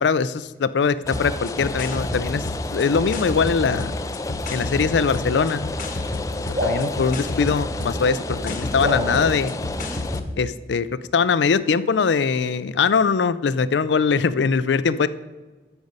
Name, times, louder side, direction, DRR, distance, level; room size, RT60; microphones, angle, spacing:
voice 1, 0.0-2.4 2.7-4.0 4.5-5.6 6.6-9.6 10.4-10.9 11.1-15.1, left 5 dB, 80° left, 16 dB, 0.4 m, -21 dB
sound 1, 1.0-10.3, left 1 dB, 45° left, 1.0 m, -31 dB
Rain, 1.1-10.2, left 2 dB, 20° left, 0.3 m, -32 dB
sound 2, 6.5-8.2 8.8-10.5, left 1 dB, 45° right, 3.5 m, -30 dB
12.5 x 5.3 x 5.4 m, 1.2 s
head